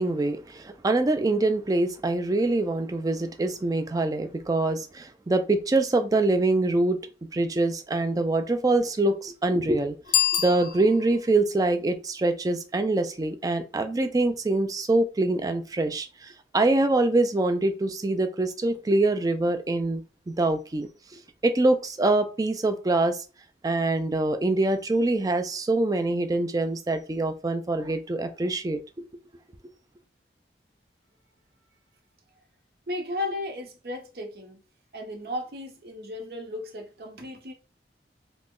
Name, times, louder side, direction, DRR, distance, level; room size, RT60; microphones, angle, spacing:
voice 1, 0.0-7.0 7.3-20.0 20.3-20.9 21.4-23.2 23.6-28.8, right 2 dB, 20° right, 0.3 m, -24 dB
Bicycle bell, 10.0-11.3, left 10 dB, 50° left, 0.5 m, -26 dB
voice 2, 32.9-34.6 34.9-37.5, left 1 dB, 60° right, 0.7 m, -35 dB
3.0 x 2.1 x 3.6 m
head